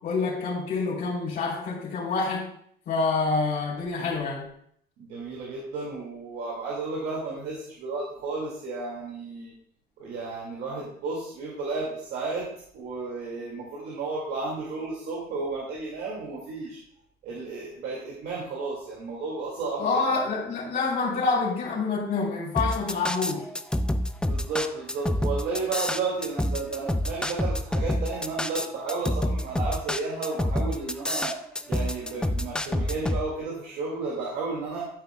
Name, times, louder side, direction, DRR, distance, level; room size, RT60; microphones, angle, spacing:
voice 1, 0.0-2.5 2.8-4.5 19.8-23.5, left 4 dB, 65° left, -9 dB, 3.3 m, -27 dB
voice 2, 5.0-9.6 10.0-16.8 17.2-20.0 24.2-31.4 31.7-34.9, right 3 dB, 80° right, -4 dB, 2.1 m, -33 dB
sound 1, 22.6-33.2, left 1 dB, 5° left, 0.5 m, -27 dB
13.0 x 5.6 x 2.3 m, 0.66 s
cardioid pair, 110°, 17 cm